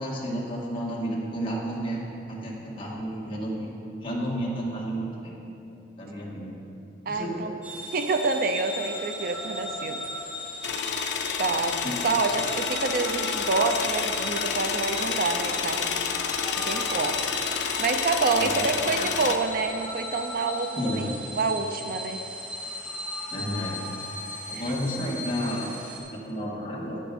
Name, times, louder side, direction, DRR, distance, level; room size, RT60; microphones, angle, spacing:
voice 1, 0.0-2.0 2.3-3.7 4.0-5.4 6.0-6.6 7.1-7.6 11.8-12.0 16.5-17.1 18.4-19.1 20.8-21.1 23.3-23.8 24.5-25.7 26.1-27.0, equal, 25° left, -5 dB, 2.0 m, -32 dB
voice 2, 7.1-7.5 7.9-10.0 11.4-11.8 12.0-15.9 16.6-17.2 17.5-21.1 21.4-22.2 24.5-24.6, right 3 dB, 50° right, 7 dB, 0.5 m, -27 dB
sound 1, 7.6-26.0, equal, 5° right, 1.3 m, -37 dB
sound 2, 10.6-19.4, left 7 dB, 60° left, 0.6 m, -29 dB
11.0 x 9.9 x 4.2 m, 2.8 s
head